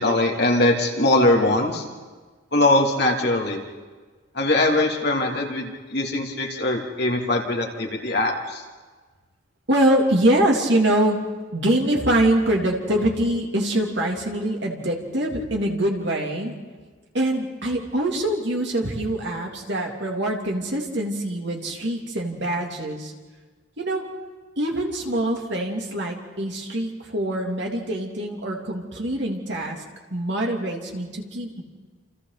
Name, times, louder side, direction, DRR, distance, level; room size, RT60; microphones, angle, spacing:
voice 1, 0.0-1.8 2.5-3.6 4.3-8.6, left 2 dB, 50° left, 1 dB, 3.1 m, -21 dB
voice 2, 9.7-11.3 11.5-16.5 17.1-23.1 23.8-24.0 24.6-29.8 30.1-31.6, right 1 dB, 55° right, 0 dB, 3.2 m, -24 dB
28.5 x 28.5 x 4.2 m, 1.4 s
head